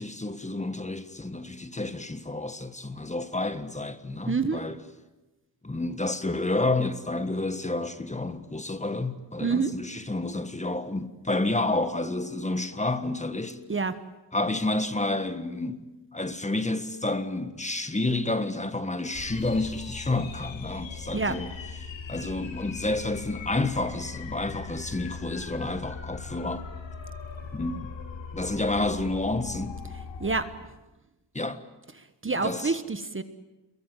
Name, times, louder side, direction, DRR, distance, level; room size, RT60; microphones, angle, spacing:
voice 1, 0.0-4.8 5.6-13.6 14.3-15.9 16.1-21.5 22.1-26.6 27.5-27.9 28.3-29.8 31.3-31.6 32.4-32.7, left 2 dB, 15° left, 1.5 m, -30 dB
voice 2, 4.3-4.6 9.4-9.7 13.7-14.0 21.1-21.4 30.2-30.5 32.0-33.2, right 4 dB, 30° right, 1.3 m, -27 dB
sound 1, 19.1-30.4, left 5 dB, 85° left, 3.9 m, -39 dB
28.0 x 22.0 x 9.2 m
wide cardioid pair, 130°, 44 cm